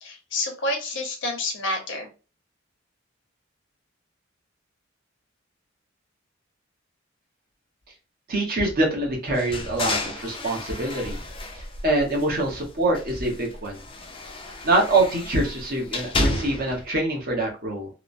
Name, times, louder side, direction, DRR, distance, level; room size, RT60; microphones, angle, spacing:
voice 1, 0.0-2.1, left 2 dB, 65° left, 3 dB, 0.8 m, -29 dB
voice 2, 8.3-11.2 11.8-13.8 14.6-17.9, right 2 dB, 50° right, 0 dB, 0.9 m, -24 dB
sound 1, 9.3-12.5 12.9-16.8, left 2 dB, 25° left, 0.5 m, -31 dB
3.0 x 2.0 x 2.5 m, 0.33 s
head